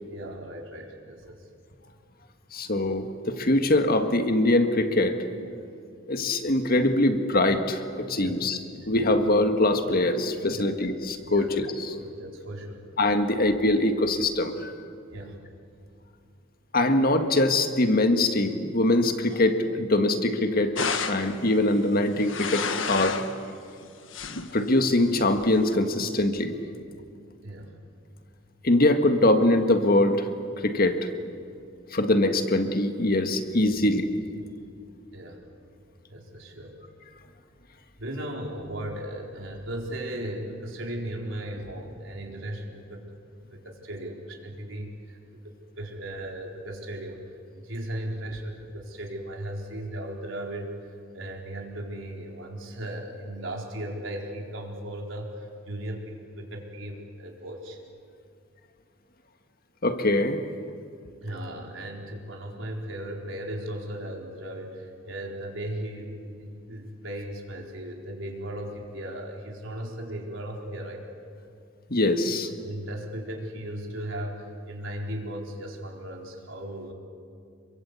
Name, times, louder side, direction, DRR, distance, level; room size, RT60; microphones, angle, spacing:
voice 1, 0.1-1.5 8.2-8.4 10.5-10.8 11.3-11.5 11.9-12.9 15.1-15.5 27.4-27.8 35.1-35.4 36.1-36.8 38.0-43.1 43.5-47.2 47.5-50.7 51.1-57.8 61.2-71.0 72.6-76.9, right 1 dB, 85° right, 0 dB, 4.5 m, -37 dB
voice 2, 2.5-5.3 6.1-8.6 8.8-11.9 13.0-14.7 16.7-20.7 21.1-23.2 24.5-26.5 28.6-30.3 30.6-31.1 31.9-34.1 59.8-60.4 71.9-72.5, left 1 dB, 50° left, 7 dB, 1.8 m, -23 dB
sound 1, 20.7-21.4 22.0-23.3 23.8-24.6 25.3-25.7, left 5 dB, 80° left, 1.5 m, -31 dB
27.5 x 23.0 x 8.4 m, 2.4 s
head